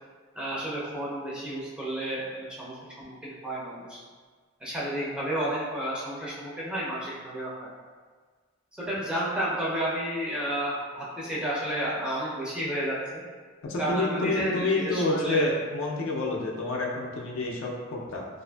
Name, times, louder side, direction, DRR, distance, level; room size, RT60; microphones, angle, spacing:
voice 1, 0.4-4.0 4.6-7.7 8.8-13.2 13.8-15.5, right 1 dB, 5° right, -7 dB, 0.4 m, -31 dB
voice 2, 13.6-18.3, left 2 dB, 65° left, -1 dB, 0.4 m, -28 dB
2.5 x 2.5 x 2.2 m, 1.5 s
head